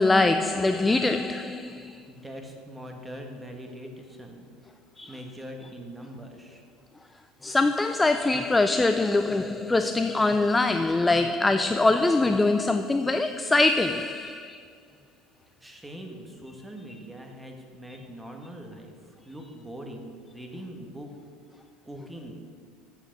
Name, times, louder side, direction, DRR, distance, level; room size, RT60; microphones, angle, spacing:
voice 1, 0.0-2.1 5.0-5.1 7.4-14.6, left 2 dB, 15° left, 0.3 m, -23 dB
voice 2, 2.1-4.5 5.1-6.6 15.6-21.1 21.8-22.4, equal, 10° right, 1.6 m, -42 dB
8.1 x 5.9 x 6.6 m
hypercardioid pair, 90°, 0 cm